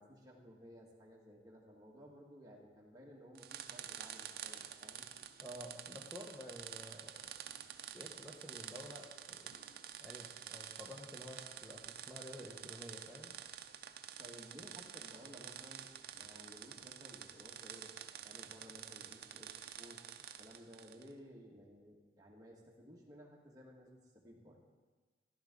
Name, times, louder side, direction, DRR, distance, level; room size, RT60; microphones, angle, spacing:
voice 1, 0.0-5.1 14.2-24.6, equal, 20° right, -2 dB, 1.9 m, -57 dB
sound 1, 3.4-21.1, right 9 dB, 60° right, 0.6 m, -49 dB
voice 2, 5.4-7.3 7.9-9.5 10.0-13.3, equal, ahead, -5 dB, 1.1 m, -51 dB
14.5 x 12.0 x 3.9 m, 1.3 s
head